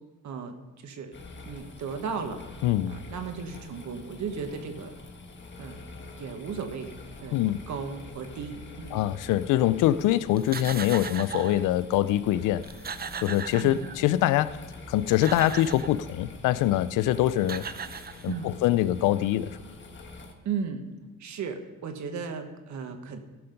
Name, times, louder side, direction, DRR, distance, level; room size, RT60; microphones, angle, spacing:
voice 1, 0.2-0.6 0.8-1.1 1.4-2.4 2.9-5.0 5.6-5.8 6.2-6.9 7.2-7.4 7.7-9.1 13.6-13.8 18.3-18.5 20.2-20.8 21.2-23.2, right 6 dB, 70° right, 1.4 m, -35 dB
sound 1, 1.1-20.3, left 3 dB, 40° left, 1.5 m, -45 dB
voice 2, 2.6-3.0 7.3-7.6 8.9-12.7 13.2-14.6 14.9-17.7 18.2-19.6, left 13 dB, 90° left, 0.5 m, -24 dB
sound 2, 10.4-11.7 12.3-12.4 12.6-14.2 14.9-16.0 17.1-17.2 17.4-18.6, right 6 dB, 30° right, 0.6 m, -37 dB
16.0 x 5.8 x 5.3 m
cardioid pair, 90°, 30 cm